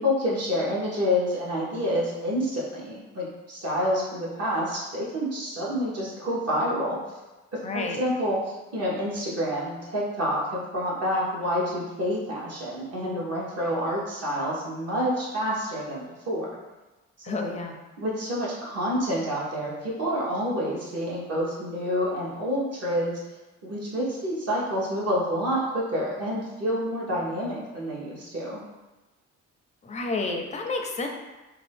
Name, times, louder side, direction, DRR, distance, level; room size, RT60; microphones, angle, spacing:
voice 1, 0.0-7.0 7.7-16.5 17.3-17.5 18.0-23.2 23.6-28.6, equal, 55° right, -6 dB, 1.1 m, -28 dB
voice 2, 7.6-8.0 17.2-17.8 29.8-31.1, left 3 dB, 25° left, 3 dB, 0.4 m, -30 dB
2.7 x 2.3 x 3.4 m, 1.1 s
cardioid pair, 90°, 30 cm